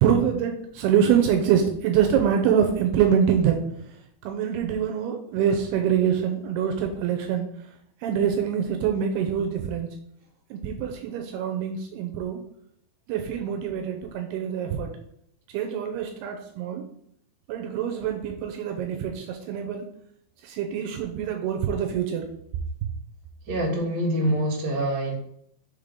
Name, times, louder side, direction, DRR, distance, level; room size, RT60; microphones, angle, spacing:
voice 1, 0.0-3.6 4.2-7.5 8.0-9.9 10.5-12.4 13.1-14.9 15.5-16.9 17.5-19.8 20.4-22.3, right 8 dB, 80° right, 5 dB, 2.6 m, -25 dB
voice 2, 23.5-25.1, right 1 dB, 35° right, -5 dB, 2.0 m, -25 dB
6.5 x 3.6 x 5.1 m, 0.70 s
omnidirectional pair, 4.8 m